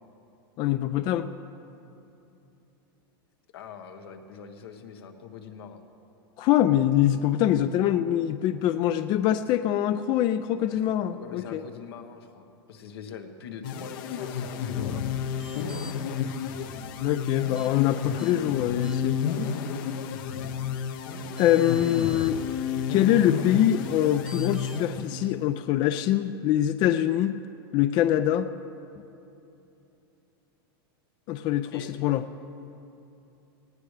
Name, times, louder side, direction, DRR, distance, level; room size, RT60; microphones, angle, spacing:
voice 1, 0.6-1.3 6.4-11.6 17.0-19.2 21.4-22.4 22.9-27.4 27.7-28.5 31.3-32.2, left 12 dB, 35° left, 11 dB, 0.4 m, -24 dB
voice 2, 3.5-5.8 10.7-16.0 31.7-31.9, left 6 dB, 80° left, 5 dB, 1.3 m, -44 dB
sound 1, 13.6-25.4, left 7 dB, 60° left, 0.8 m, -31 dB
sound 2, 15.3-15.9 17.5-17.7 18.2-18.3 18.8-19.2 20.9-21.0 21.4-22.3 24.3-24.8, equal, 5° right, 0.8 m, -46 dB
19.0 x 16.0 x 3.3 m, 2.9 s
supercardioid pair, 140°, 13 cm